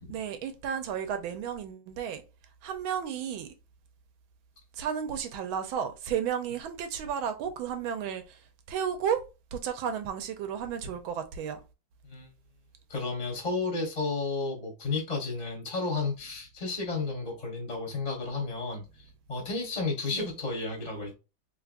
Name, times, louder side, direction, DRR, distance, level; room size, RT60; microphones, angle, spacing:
voice 1, 0.1-2.2 2.6-3.5 4.7-8.4 8.7-9.2 9.5-11.6 20.1-20.3, right 8 dB, 85° right, 1.5 m, -33 dB
voice 2, 12.9-18.8 19.3-21.1, left 3 dB, 25° left, 1.0 m, -32 dB
3.6 x 3.5 x 2.4 m
omnidirectional pair, 2.2 m